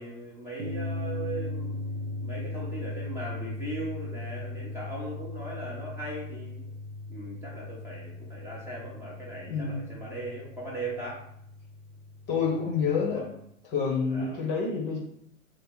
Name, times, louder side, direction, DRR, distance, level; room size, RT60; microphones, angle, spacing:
voice 1, 0.0-1.7 2.2-6.7 7.1-11.2 13.1-13.2 14.1-14.4, right 2 dB, 5° right, -7 dB, 0.8 m, -38 dB
sound 1, 0.6-13.5, left 2 dB, 55° right, 0.7 m, -38 dB
voice 2, 9.5-9.8 12.3-13.3 13.6-15.0, left 5 dB, 25° left, -1 dB, 0.9 m, -28 dB
3.3 x 3.0 x 4.2 m, 0.72 s
figure-of-eight pair, 100°, 41 cm